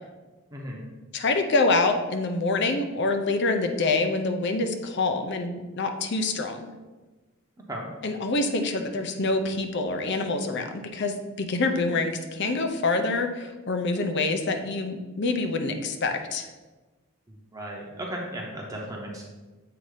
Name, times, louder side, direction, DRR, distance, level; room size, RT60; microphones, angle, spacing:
voice 1, 0.5-0.8 7.7-7.9 17.5-19.2, right 1 dB, 15° right, -2 dB, 0.8 m, -35 dB
voice 2, 1.1-6.7 8.0-16.5, left 3 dB, 50° left, 6 dB, 0.6 m, -26 dB
7.6 x 2.7 x 4.9 m, 1.2 s
head